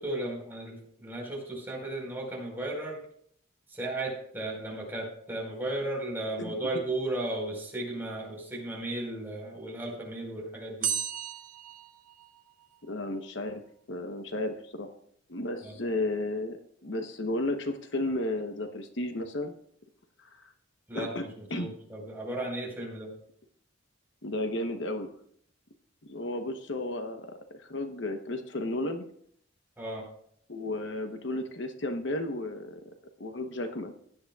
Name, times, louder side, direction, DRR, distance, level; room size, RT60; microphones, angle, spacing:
voice 1, 0.0-3.0 3.7-10.9 15.6-15.8 20.9-23.1 29.8-30.1, right 1 dB, 10° right, -2 dB, 4.6 m, -35 dB
sound 1, 10.8-12.7, right 8 dB, 45° right, 1.1 m, -34 dB
voice 2, 12.9-13.6 13.9-14.9 15.3-19.5 20.2-20.5 20.9-21.2 21.5-21.7 24.2-25.1 26.1-29.1 30.5-32.8 33.2-33.9, left 1 dB, 65° left, 6 dB, 1.0 m, -33 dB
16.5 x 11.0 x 2.4 m, 0.64 s
head